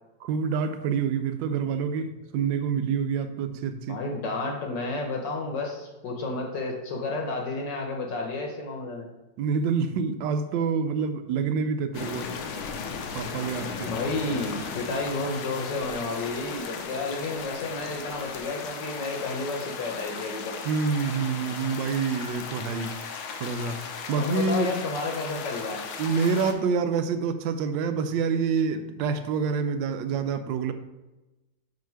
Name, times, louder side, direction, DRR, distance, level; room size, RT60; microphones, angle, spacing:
voice 1, 0.2-4.0 9.4-12.3 13.1-13.9 20.6-23.0 23.4-23.8 24.1-24.7 26.0-30.7, right 5 dB, 75° right, 9 dB, 1.2 m, -27 dB
voice 2, 3.9-9.1 13.9-20.6 24.2-25.8, left 3 dB, 65° left, 1 dB, 1.5 m, -31 dB
sound 1, 11.9-26.5, left 5 dB, 90° left, 1.6 m, -36 dB
5.6 x 4.9 x 4.6 m, 1.1 s
omnidirectional pair, 2.2 m